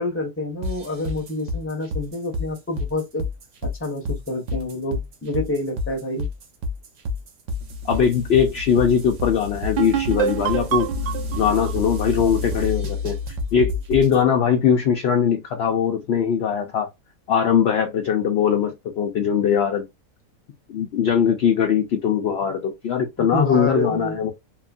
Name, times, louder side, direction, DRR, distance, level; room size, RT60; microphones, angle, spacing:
voice 1, 0.0-3.2 3.6-6.3 23.2-24.2, left 1 dB, 10° left, 0.8 m, -28 dB
sound 1, 0.6-14.2, left 3 dB, 60° right, 0.9 m, -29 dB
voice 2, 7.8-10.9 11.4-13.2 13.5-16.9 17.3-19.8 20.7-24.3, left 7 dB, 65° left, 0.6 m, -21 dB
sound 2, 9.8-13.3, right 10 dB, 85° right, 0.4 m, -27 dB
2.9 x 2.4 x 2.4 m
omnidirectional pair, 1.6 m